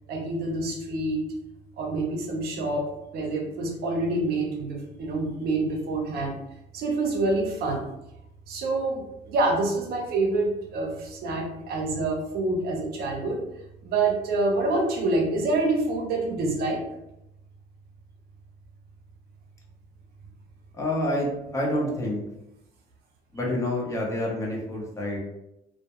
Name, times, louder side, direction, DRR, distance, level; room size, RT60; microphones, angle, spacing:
voice 1, 0.1-1.2 1.8-6.4 6.7-7.9 8.5-13.4 13.8-16.8, right 2 dB, 65° right, 1 dB, 0.6 m, -27 dB
voice 2, 20.7-22.2 23.3-25.2, left 1 dB, 20° left, -3 dB, 0.7 m, -28 dB
2.2 x 2.0 x 2.9 m, 0.87 s
cardioid pair, 110°, 17 cm